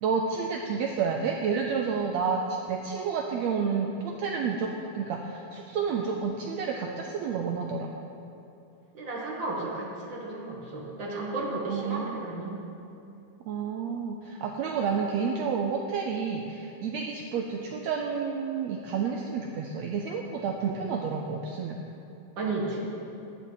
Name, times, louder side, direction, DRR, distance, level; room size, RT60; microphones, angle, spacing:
voice 1, 0.0-7.9 11.7-12.2 13.4-21.8, right 5 dB, 80° right, 2 dB, 1.6 m, -30 dB
voice 2, 8.9-12.6 22.4-22.8, right 2 dB, 45° right, -3 dB, 1.8 m, -33 dB
14.0 x 10.5 x 4.0 m, 2.7 s
omnidirectional pair, 3.7 m